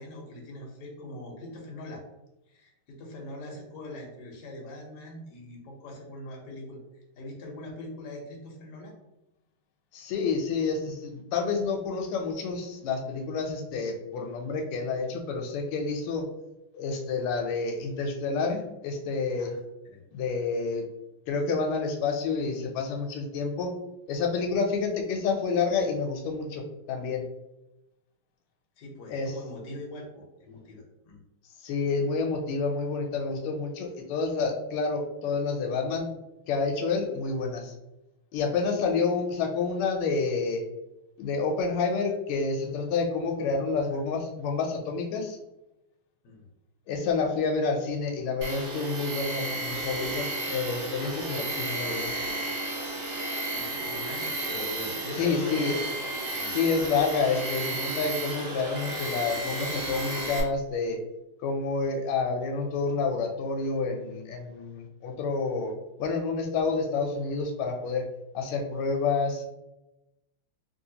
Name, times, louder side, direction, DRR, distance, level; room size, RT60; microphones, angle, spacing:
voice 1, 0.0-2.0 2.5-8.9 18.5-18.6 19.4-19.6 19.8-20.0 28.8-31.2 46.2-46.5 53.6-55.8 56.3-56.5, left 1 dB, 60° left, -1 dB, 1.2 m, -42 dB
voice 2, 9.9-16.2 16.7-19.5 20.1-20.8 21.3-23.7 24.1-26.6 26.9-27.2 29.1-29.3 31.6-36.1 36.5-37.7 38.3-40.6 41.2-45.4 46.9-52.1 55.2-55.8 56.5-61.0 61.4-65.7 66.0-68.0 68.3-69.5, left 4 dB, 90° left, 3 dB, 1.5 m, -29 dB
Tools, 48.4-60.4, right 2 dB, 60° right, 1.2 m, -33 dB
3.2 x 2.9 x 2.7 m, 0.95 s
omnidirectional pair, 2.3 m